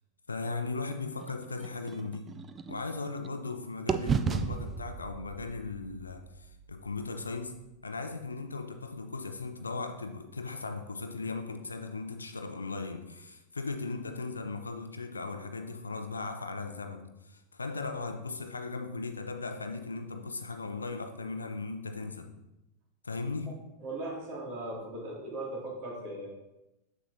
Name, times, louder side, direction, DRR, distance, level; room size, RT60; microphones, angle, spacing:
voice 1, 0.3-2.3 2.7-7.6 7.8-22.3 23.0-23.5, left 3 dB, 75° left, 7 dB, 0.6 m, -37 dB
sound 1, 1.2-3.5 3.9-7.9, right 6 dB, 20° right, 0.4 m, -36 dB
voice 2, 23.8-26.3, right 2 dB, 40° right, -3 dB, 2.6 m, -38 dB
7.3 x 7.0 x 2.8 m, 0.93 s
figure-of-eight pair, 90°, 0 cm